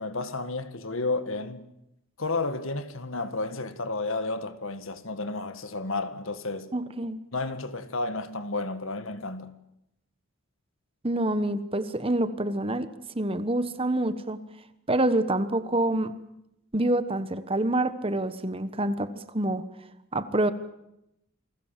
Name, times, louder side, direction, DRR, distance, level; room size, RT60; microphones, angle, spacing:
voice 1, 0.0-1.7 2.2-6.7 7.3-9.5, left 3 dB, 70° left, 1.7 m, -32 dB
voice 2, 6.7-7.2 11.0-12.9 13.1-14.4 14.9-16.1 16.7-19.6 20.1-20.5, right 1 dB, 25° right, 1.3 m, -26 dB
28.5 x 20.5 x 7.6 m
head